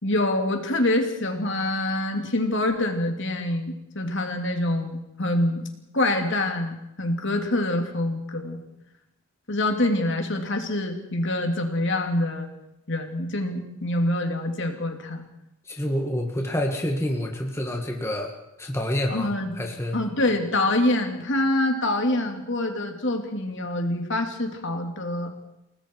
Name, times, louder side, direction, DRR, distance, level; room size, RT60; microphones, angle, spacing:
voice 1, 0.0-5.6 5.9-8.6 9.5-12.5 12.9-15.2 19.1-19.5 19.9-25.3, left 1 dB, 55° left, 4 dB, 2.9 m, -25 dB
voice 2, 15.7-18.3 18.6-20.0, left 1 dB, 10° left, 2 dB, 1.9 m, -28 dB
29.5 x 19.5 x 4.7 m, 0.89 s
head